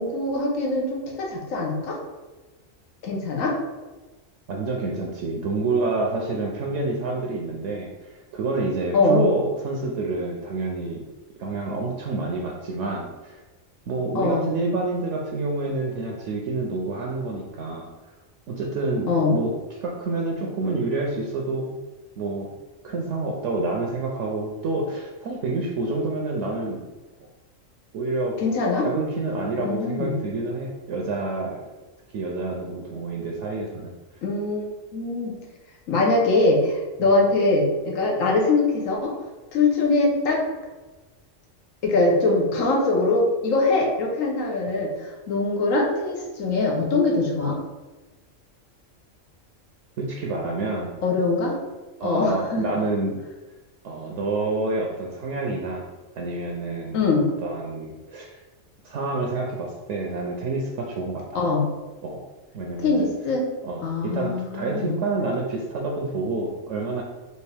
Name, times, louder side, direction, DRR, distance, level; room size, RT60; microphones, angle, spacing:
voice 1, 0.0-2.0 3.0-3.6 8.9-9.2 14.1-14.5 19.1-19.4 28.4-28.9 29.6-30.1 34.2-35.3 35.9-39.1 39.5-40.4 41.8-47.6 51.0-51.6 52.0-52.8 56.9-57.3 61.3-61.7 62.8-63.4 63.8-64.9, left 3 dB, 85° left, -1 dB, 1.2 m, -22 dB
voice 2, 4.5-11.0 11.4-13.4 13.9-17.9 18.5-21.7 22.2-22.5 22.8-26.8 27.9-28.4 28.8-31.6 32.1-33.9 37.0-37.1 50.0-51.0 52.0-53.2 53.8-57.0 57.4-58.4 58.8-61.4 62.0-62.3 62.5-63.1 63.6-67.0, right 3 dB, 70° right, 0 dB, 0.9 m, -28 dB
4.5 x 2.6 x 3.3 m, 1.2 s
omnidirectional pair, 1.3 m